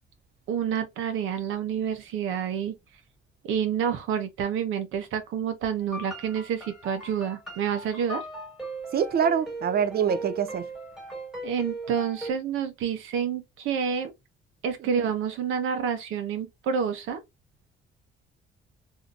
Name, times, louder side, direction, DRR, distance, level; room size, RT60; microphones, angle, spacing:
voice 1, 0.5-2.8 3.4-8.2 11.4-14.1 14.6-17.2, right 7 dB, 90° right, 0.9 m, -28 dB
sound 1, 5.8-12.3, right 1 dB, ahead, 1.6 m, -38 dB
voice 2, 8.9-10.7 14.9-15.0, right 7 dB, 50° right, 0.5 m, -25 dB
3.7 x 2.7 x 2.4 m
cardioid pair, 90°, 20 cm